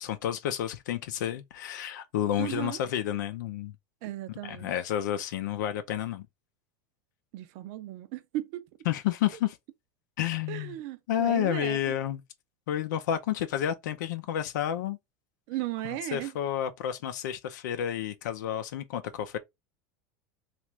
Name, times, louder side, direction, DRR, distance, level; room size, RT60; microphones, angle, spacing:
voice 1, 0.0-3.7 4.3-6.3 8.9-9.6 10.2-10.8 11.1-12.2 12.7-15.0 15.8-19.4, left 10 dB, 85° left, 0.5 m, -30 dB
voice 2, 2.4-2.8 4.0-4.7 7.3-8.6 10.5-12.0 15.5-16.3, right 15 dB, 60° right, 0.6 m, -36 dB
3.0 x 2.5 x 3.3 m
supercardioid pair, 145°, 10 cm